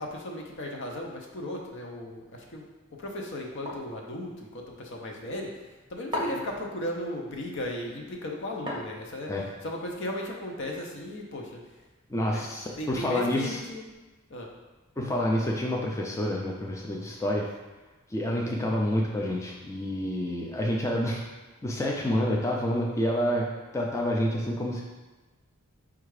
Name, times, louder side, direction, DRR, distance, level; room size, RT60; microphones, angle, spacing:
voice 1, 0.0-2.6 2.9-5.5 5.9-9.3 9.6-11.6 12.3-12.4 12.8-13.9 14.3-14.5, left 1 dB, 60° left, 1 dB, 0.7 m, -36 dB
sound 1, 3.7-4.0 6.1-6.6 8.7-9.3, left 1 dB, 25° right, 0.7 m, -34 dB
voice 2, 12.1-13.6 15.0-17.5 18.1-21.2 21.6-23.4 23.7-24.8, left 1 dB, 15° left, -2 dB, 0.4 m, -28 dB
4.5 x 2.4 x 4.7 m, 1.2 s
head